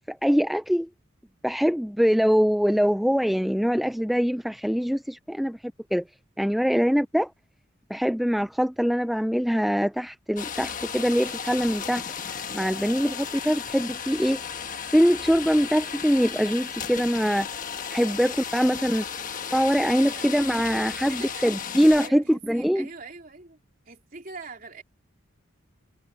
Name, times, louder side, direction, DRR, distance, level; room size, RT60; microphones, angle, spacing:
voice 1, 0.1-0.9 1.4-5.6 5.9-6.0 6.4-7.3 7.9-12.0 12.5-14.4 14.9-17.5 17.9-19.0 19.5-22.9, equal, ahead, 0.3 m, -23 dB
sound 1, 10.4-22.1, left 7 dB, 40° left, 1.5 m, -35 dB
voice 2, 12.9-13.6 19.8-20.3 20.8-23.6 23.9-24.8, right 4 dB, 40° right, 3.6 m, -44 dB
head